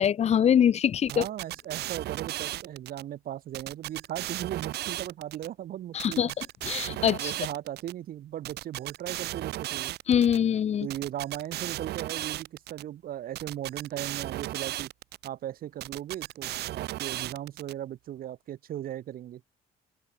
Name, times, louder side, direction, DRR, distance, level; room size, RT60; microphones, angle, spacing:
voice 1, 0.0-1.2 5.9-7.3 10.1-10.9, left 9 dB, 40° left, 0.7 m, -24 dB
voice 2, 1.1-6.3 7.2-9.9 10.8-14.9 15.2-19.4, right 12 dB, 60° right, 1.8 m, -37 dB
sound 1, 1.1-3.0 3.5-5.5 6.0-7.9 8.4-10.4 10.9-12.8 13.3-15.3 15.8-17.7, right 15 dB, 75° right, 2.5 m, -35 dB
open air
cardioid pair, 110°, 17 cm